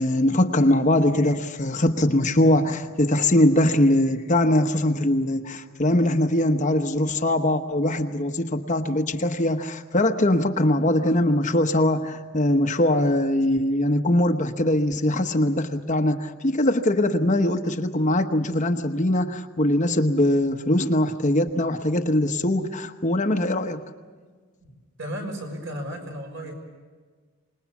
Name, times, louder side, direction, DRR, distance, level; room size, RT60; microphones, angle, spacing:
voice 1, 0.0-23.8, left 1 dB, 35° left, 6 dB, 1.0 m, -22 dB
voice 2, 25.0-26.5, equal, 60° right, 2 dB, 6.1 m, -34 dB
26.0 x 21.0 x 7.2 m, 1.5 s
head